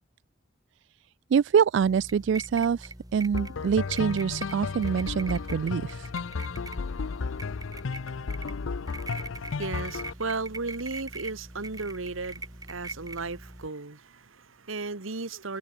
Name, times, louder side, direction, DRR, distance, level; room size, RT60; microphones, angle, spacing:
voice 1, 1.3-6.1, right 7 dB, 65° right, 0.3 m, -25 dB
sound 1, 1.8-13.7, right 3 dB, 20° right, 3.6 m, -42 dB
sound 2, 3.3-10.1, left 4 dB, 80° left, 0.6 m, -33 dB
voice 2, 9.6-15.6, right 3 dB, 85° right, 1.5 m, -35 dB
head